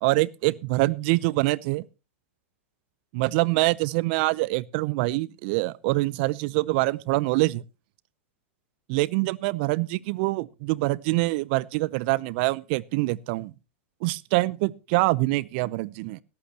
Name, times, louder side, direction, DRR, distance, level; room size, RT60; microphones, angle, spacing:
voice 1, 0.0-1.8 3.1-7.6 8.9-13.5 14.0-16.2, right 21 dB, 50° right, 0.6 m, -25 dB
19.5 x 11.5 x 2.9 m
hypercardioid pair, 110°, 7 cm